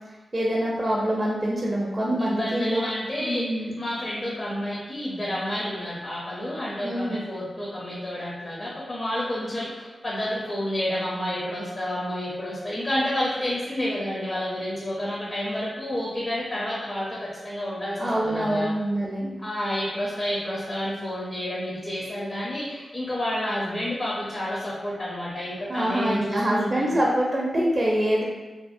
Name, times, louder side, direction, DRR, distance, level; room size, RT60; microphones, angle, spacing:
voice 1, 0.3-2.8 3.2-3.7 6.8-7.3 18.0-19.3 25.7-28.2, right 1 dB, 30° right, -3 dB, 0.4 m, -25 dB
voice 2, 2.2-18.7 19.4-26.9, left 1 dB, 40° left, -6 dB, 0.6 m, -30 dB
2.6 x 2.6 x 2.6 m, 1.2 s
wide cardioid pair, 100°, 0 cm